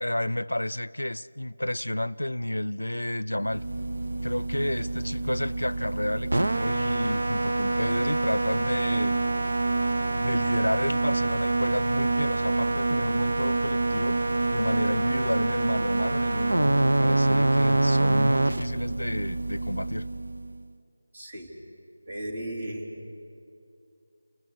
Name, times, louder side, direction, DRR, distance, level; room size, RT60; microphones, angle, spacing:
voice 1, 0.0-3.6 4.2-9.2 10.2-14.2 14.5-20.1, left 1 dB, 85° left, 21 dB, 0.5 m, -31 dB
sound 1, 3.4-20.6, right 2 dB, 65° right, 0.7 m, -26 dB
voice 2, 21.1-21.5 22.1-22.9, right 1 dB, 45° right, 0 dB, 3.8 m, -35 dB
28.5 x 16.5 x 6.6 m, 2.6 s
figure-of-eight pair, 165°, 0 cm